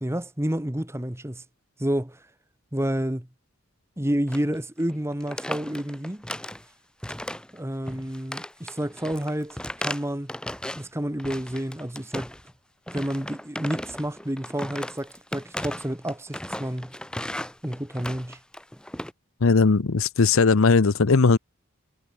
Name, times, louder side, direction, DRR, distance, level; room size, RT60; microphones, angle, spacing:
voice 1, 0.0-1.4 1.8-2.2 2.7-3.3 4.0-6.2 7.5-10.3 10.8-12.3 12.9-16.9 17.6-18.4, right 1 dB, 10° right, 1.4 m, -29 dB
sound 1, 4.3-4.5 4.8-4.9 5.2-6.7 7.0-7.6 7.9-10.9 11.2-12.5 12.9-19.1, left 1 dB, 5° left, 1.0 m, -36 dB
voice 2, 19.4-21.4, left 4 dB, 70° left, 0.7 m, -18 dB
head